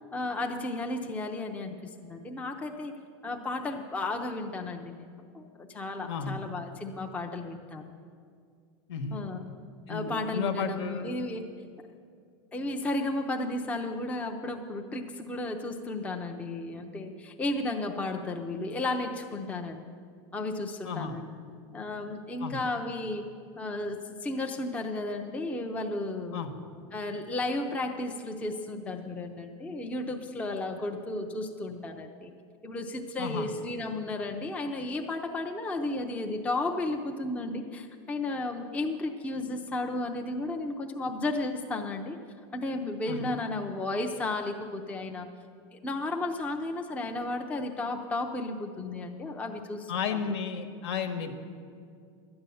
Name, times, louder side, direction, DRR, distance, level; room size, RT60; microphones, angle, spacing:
voice 1, 0.1-1.8 2.0-2.9 3.2-4.9 5.3-7.9 9.1-9.4 9.9-11.5 12.5-19.8 20.3-21.2 21.7-23.2 23.6-26.4 26.9-32.3 32.6-42.2 42.5-45.3 45.7-50.2, left 2 dB, 10° left, 3 dB, 0.5 m, -33 dB
voice 2, 6.1-6.4 8.9-9.2 9.9-11.1 20.8-21.1 22.4-22.6 26.3-26.5 33.2-33.5 43.1-43.3 49.9-51.4, left 6 dB, 65° left, 8 dB, 1.3 m, -33 dB
12.0 x 8.8 x 6.9 m, 2.3 s
supercardioid pair, 150°, 15 cm